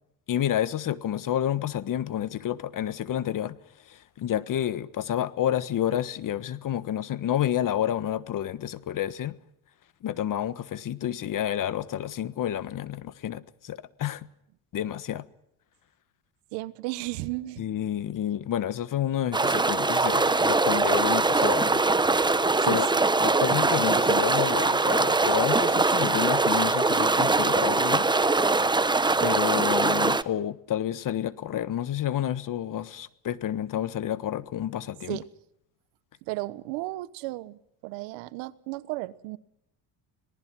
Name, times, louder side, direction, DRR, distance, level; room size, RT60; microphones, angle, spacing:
voice 1, 0.3-3.6 3.8-9.4 10.0-14.3 14.7-15.2 17.6-21.8 22.3-22.9 23.2-28.1 29.2-35.2, left 11 dB, 50° left, 1.4 m, -29 dB
voice 2, 16.5-17.6 22.6-22.8 35.1-35.3 36.2-39.4, right 19 dB, 85° right, 1.2 m, -34 dB
sound 1, 19.3-30.2, right 3 dB, 10° right, 0.9 m, -22 dB
26.5 x 19.0 x 6.1 m
supercardioid pair, 90°, 41 cm